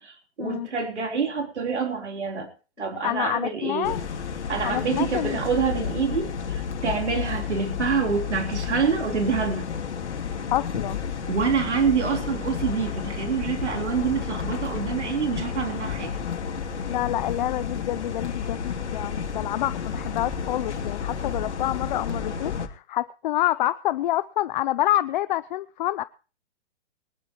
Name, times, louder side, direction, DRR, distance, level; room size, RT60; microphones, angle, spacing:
voice 1, 0.0-2.5 2.8-3.9 4.5-9.7 11.3-16.1, right 6 dB, 85° right, 3 dB, 3.8 m, -26 dB
voice 2, 2.8-4.0 4.6-5.4 10.5-11.0 16.9-26.0, left 14 dB, 45° left, 14 dB, 0.7 m, -27 dB
sound 1, 3.8-22.7, left 6 dB, 80° left, 3.0 m, -31 dB
23.0 x 12.0 x 3.1 m, 0.35 s
hypercardioid pair, 140°, 34 cm